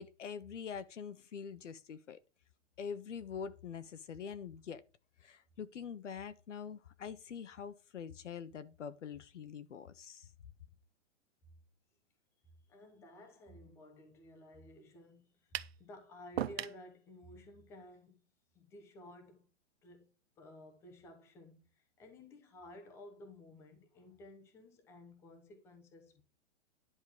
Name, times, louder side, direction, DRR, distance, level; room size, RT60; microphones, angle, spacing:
voice 1, 0.0-2.2 2.8-4.8 5.2-10.3, left 7 dB, 80° left, 1.3 m, -45 dB
voice 2, 12.7-18.2 18.5-19.5 19.8-26.2, left 1 dB, 5° left, 0.9 m, -55 dB
sound 1, 15.5-15.8 16.4-16.8, right 11 dB, 60° right, 0.8 m, -37 dB
10.5 x 5.3 x 6.2 m
hypercardioid pair, 175°, 36 cm